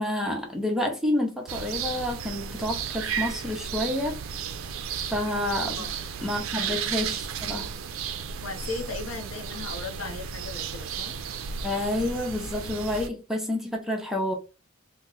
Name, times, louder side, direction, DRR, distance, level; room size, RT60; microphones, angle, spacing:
voice 1, 0.0-4.2 5.1-5.9 6.2-7.7 11.6-14.3, left 1 dB, ahead, 0.6 m, -29 dB
sound 1, 1.5-13.1, right 7 dB, 70° right, 0.4 m, -34 dB
voice 2, 6.4-6.8 8.4-11.1, left 4 dB, 70° left, 0.6 m, -37 dB
2.8 x 2.0 x 3.8 m
head